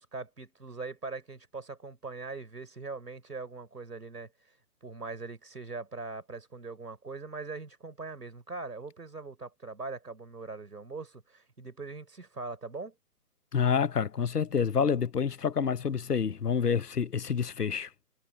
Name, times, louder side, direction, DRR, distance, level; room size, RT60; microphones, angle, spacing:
voice 1, 0.0-4.3 4.8-12.9, right 3 dB, 85° right, 4.9 m, -41 dB
voice 2, 13.5-17.9, left 6 dB, 80° left, 1.3 m, -28 dB
figure-of-eight pair, 140°, 46 cm